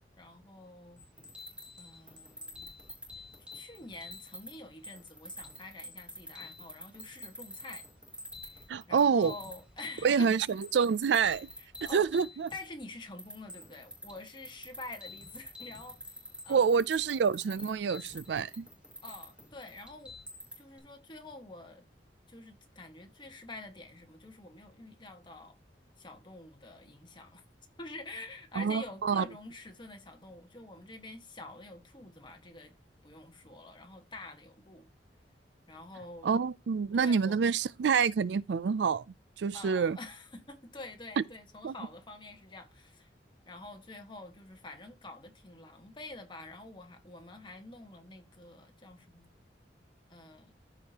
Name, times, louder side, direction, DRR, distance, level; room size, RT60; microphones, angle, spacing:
voice 1, 0.2-1.0 1.8-2.7 3.1-3.3 3.5-7.8 8.4-10.6 11.6-12.1 12.5-16.2 16.4-16.7 19.0-20.1 20.6-21.9 22.3-25.6 26.0-27.4 27.8-32.8 33.0-34.9 35.7-36.3 36.9-37.4 39.5-43.1 43.5-49.3 50.1-50.5, left 2 dB, 25° left, 1.5 m, -47 dB
sound 1, 1.0-4.5 4.8-12.8 13.2-20.8, left 1 dB, 5° right, 3.3 m, -47 dB
voice 2, 8.7-9.3 10.0-11.5 11.8-12.5 16.5-18.7 28.6-29.3 36.2-39.0 39.4-40.0 41.6-41.7, right 6 dB, 70° right, 0.4 m, -27 dB
14.0 x 5.0 x 2.9 m
head